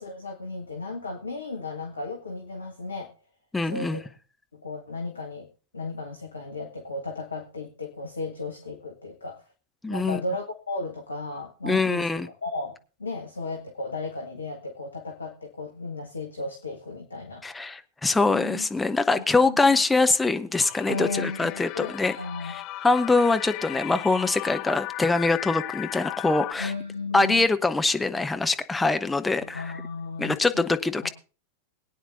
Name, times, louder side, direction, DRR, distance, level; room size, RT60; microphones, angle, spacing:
voice 1, 0.0-3.1 3.6-4.1 4.5-5.5 5.7-9.4 9.9-12.1 12.4-17.4 18.1-18.7 19.4-19.8 20.9-22.5 26.6-27.5 29.4-30.6 31.0-31.1, left 3 dB, 75° left, 3 dB, 1.5 m, -35 dB
voice 2, 3.5-4.0 9.8-10.2 11.6-12.3 17.4-22.1 22.4-26.7 27.1-29.6 30.2-31.1, left 3 dB, 10° left, 8 dB, 0.9 m, -23 dB
sound 1, 20.6-26.5, left 16 dB, 40° left, 0.6 m, -36 dB
21.5 x 9.3 x 2.6 m, 0.36 s
figure-of-eight pair, 90°, 0 cm